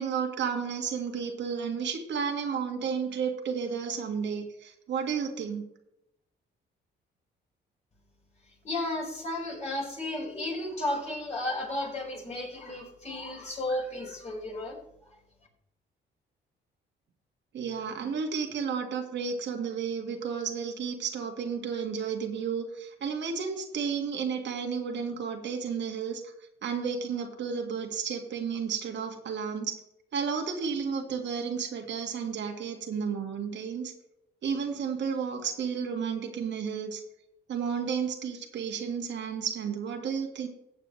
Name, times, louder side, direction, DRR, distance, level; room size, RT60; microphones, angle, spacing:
voice 1, 0.0-5.6 17.5-26.3 26.6-29.8 30.1-33.9 34.4-37.0 37.5-40.5, right 6 dB, 65° right, 4 dB, 1.8 m, -32 dB
voice 2, 8.5-14.8, left 1 dB, 35° left, -2 dB, 4.8 m, -33 dB
15.0 x 8.1 x 3.2 m, 0.82 s
cardioid pair, 90°, 20 cm